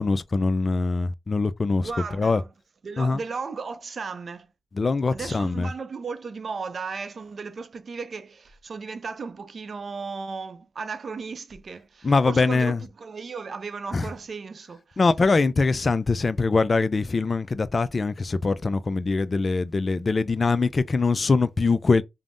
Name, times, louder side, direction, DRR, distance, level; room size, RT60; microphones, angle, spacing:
voice 1, 0.0-2.4 3.0-3.2 4.7-5.7 12.0-12.8 13.9-14.1 15.0-22.0, left 3 dB, 45° left, 0.3 m, -23 dB
voice 2, 1.7-2.5 2.8-4.5 5.1-15.0, right 4 dB, 55° right, 0.4 m, -35 dB
3.4 x 2.0 x 2.5 m
supercardioid pair, 50°, 0 cm